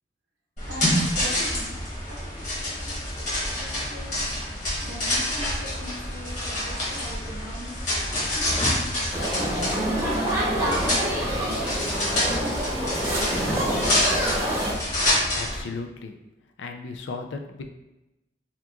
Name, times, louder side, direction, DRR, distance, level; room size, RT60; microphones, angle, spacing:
sound 1, 0.6-15.6, left 1 dB, 40° left, 1.1 m, -27 dB
voice 1, 0.7-1.7 2.1-4.3 4.8-8.9 9.3-11.9 12.2-14.2 15.3-15.5, equal, 70° right, -5 dB, 0.6 m, -40 dB
sound 2, 9.1-14.7, right 1 dB, 15° right, 0.8 m, -26 dB
voice 2, 15.1-16.2 16.6-17.7, left 4 dB, 85° left, 4 dB, 0.4 m, -36 dB
2.9 x 2.3 x 3.6 m, 0.96 s
head